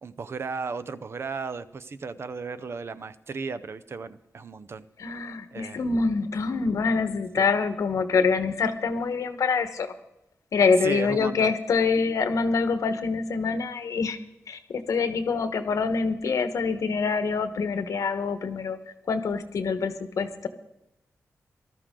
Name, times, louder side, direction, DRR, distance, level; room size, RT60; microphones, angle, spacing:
voice 1, 0.0-5.3 5.5-5.8 7.3-7.5 10.8-11.5, right 4 dB, 50° right, 13 dB, 0.6 m, -35 dB
voice 2, 5.0-9.9 10.5-14.2 14.5-18.8 19.1-20.5, left 4 dB, 85° left, 9 dB, 1.2 m, -25 dB
19.0 x 13.0 x 3.8 m, 0.86 s
wide cardioid pair, 130°, 5 cm